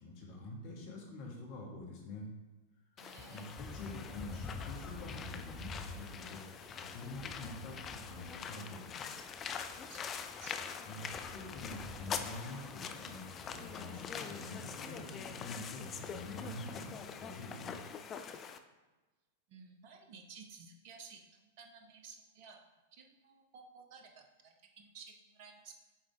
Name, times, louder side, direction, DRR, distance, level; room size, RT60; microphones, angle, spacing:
voice 1, 0.0-2.3 3.3-9.2 10.8-17.8, left 2 dB, 50° left, -2 dB, 1.9 m, -47 dB
sound 1, 3.0-18.6, left 7 dB, 25° left, 0.4 m, -44 dB
voice 2, 3.0-3.6 9.9-10.1 10.4-10.9 19.5-22.6 22.9-25.8, right 5 dB, 50° right, 4 dB, 1.0 m, -55 dB
sound 2, 3.6-16.8, left 3 dB, 5° left, 1.2 m, -50 dB
sound 3, 12.2-17.9, left 1 dB, 70° left, 2.0 m, -65 dB
7.6 x 3.8 x 3.6 m, 1.2 s
figure-of-eight pair, 95°, 0 cm